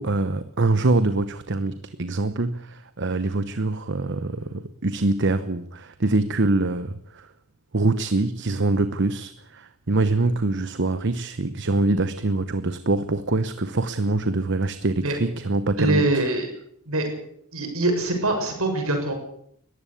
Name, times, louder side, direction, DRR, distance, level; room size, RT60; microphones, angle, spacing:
voice 1, 0.0-7.3 7.7-16.2, right 2 dB, 55° right, 1.0 m, -24 dB
voice 2, 15.8-16.5 16.9-17.1 17.5-19.1, right 2 dB, 70° right, 6.9 m, -23 dB
21.0 x 15.0 x 8.5 m
head